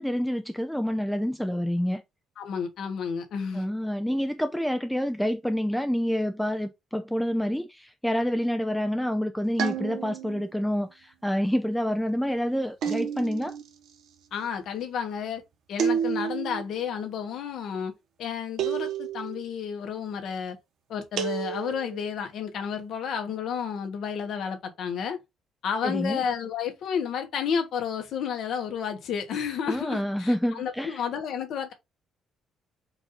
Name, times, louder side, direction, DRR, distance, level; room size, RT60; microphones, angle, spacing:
voice 1, 0.0-2.0 3.5-13.6 25.8-26.2 29.7-31.0, equal, ahead, 0.3 m, -28 dB
voice 2, 2.4-3.7 14.3-15.4 15.7-17.9 18.2-20.6 20.9-25.2 25.6-31.7, left 7 dB, 60° left, 1.3 m, -31 dB
sound 1, 9.6-10.4 12.8-13.6 15.8-16.6 18.6-19.4 21.2-22.0, right 8 dB, 65° right, 1.1 m, -30 dB
4.7 x 2.6 x 4.1 m
cardioid pair, 145°, 0 cm